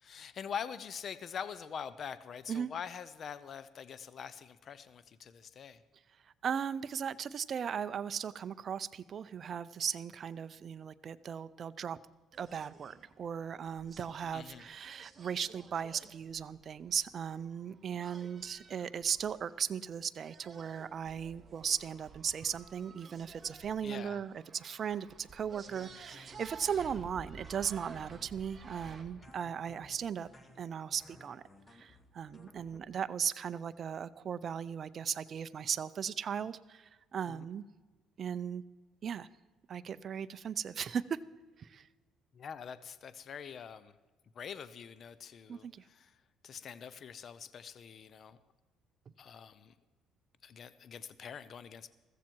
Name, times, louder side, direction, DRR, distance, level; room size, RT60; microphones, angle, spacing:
voice 1, 0.0-5.8 14.3-14.6 23.8-24.2 37.3-37.4 42.3-44.0 44.3-46.1 46.4-48.4 49.2-49.7 50.4-51.9, left 7 dB, 45° left, 15 dB, 0.7 m, -44 dB
voice 2, 6.4-12.0 12.4-30.3 30.6-31.4 31.7-37.6 38.2-38.6 39.0-39.3 39.7-41.2 41.6-41.9 45.5-45.8, right 7 dB, 45° right, 14 dB, 0.6 m, -37 dB
sound 1, 12.3-29.0, right 4 dB, 25° right, 1.9 m, -54 dB
sound 2, 25.7-32.8, left 2 dB, 20° left, 1.7 m, -59 dB
15.0 x 15.0 x 4.6 m, 1.3 s
cardioid pair, 115°, 0 cm